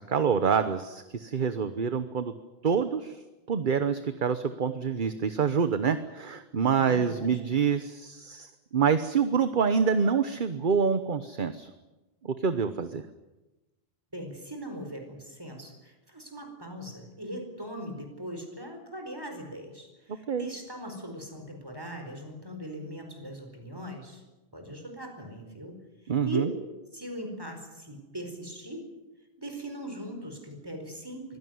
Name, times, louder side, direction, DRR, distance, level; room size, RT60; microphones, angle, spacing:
voice 1, 0.0-2.3 2.6-3.2 3.5-11.7 12.3-13.0 20.3-20.5 26.1-26.5, right 6 dB, 55° right, 10 dB, 1.1 m, -26 dB
voice 2, 6.8-7.3 14.1-24.2 24.5-26.6 26.9-28.9 29.4-31.4, right 1 dB, 20° right, 5 dB, 4.8 m, -40 dB
24.0 x 16.5 x 9.4 m, 1.1 s
omnidirectional pair, 1.0 m